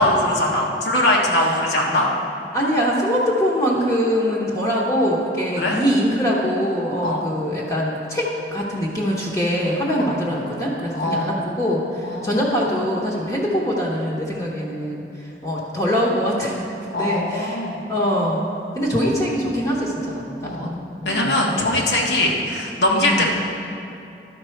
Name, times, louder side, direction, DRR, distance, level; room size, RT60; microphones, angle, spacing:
voice 1, 0.0-2.1 5.6-5.8 7.0-7.2 10.0-10.1 10.9-11.3 12.0-12.4 16.9-17.8 20.4-20.7 21.0-23.3, left 1 dB, 75° left, -2 dB, 1.2 m, -21 dB
voice 2, 2.5-8.3 8.5-16.6 16.9-21.4 23.0-23.3, equal, 20° left, -5 dB, 0.9 m, -23 dB
12.0 x 5.3 x 4.5 m, 2.7 s
head